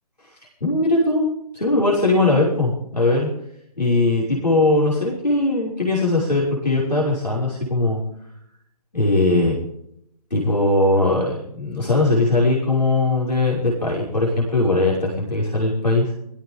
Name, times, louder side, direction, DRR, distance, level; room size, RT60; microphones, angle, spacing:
voice 1, 0.6-1.2 1.5-3.3 3.8-8.0 8.9-9.6 10.3-16.1, left 2 dB, 85° left, -4 dB, 5.8 m, -20 dB
23.5 x 15.5 x 3.7 m, 0.75 s
figure-of-eight pair, 140°, 21 cm